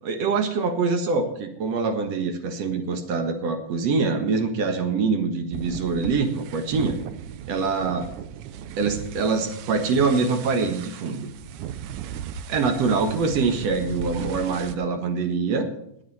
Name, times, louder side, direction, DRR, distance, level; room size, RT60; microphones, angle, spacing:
voice 1, 0.0-7.0 7.5-8.1 8.8-11.3 12.5-15.7, right 4 dB, 55° right, 7 dB, 2.4 m, -24 dB
sound 1, 5.5-14.7, right 9 dB, 75° right, 2.1 m, -37 dB
20.5 x 8.1 x 4.2 m, 0.76 s
omnidirectional pair, 3.8 m